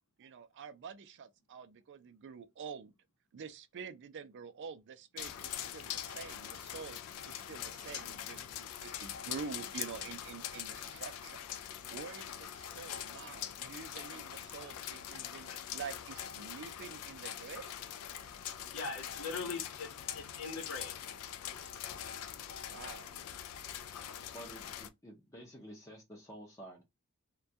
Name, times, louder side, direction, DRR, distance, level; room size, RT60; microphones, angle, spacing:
voice 1, 0.2-2.9 3.3-7.0 7.3-11.4 11.9-17.7 22.7-23.1, right 6 dB, 55° right, 0.4 m, -47 dB
sound 1, 5.2-24.9, left 10 dB, 90° left, 0.3 m, -43 dB
voice 2, 18.7-19.9 20.1-20.9, left 4 dB, 70° left, 0.7 m, -40 dB
voice 3, 24.3-26.8, right 1 dB, 15° left, 0.5 m, -50 dB
2.2 x 2.2 x 2.6 m
head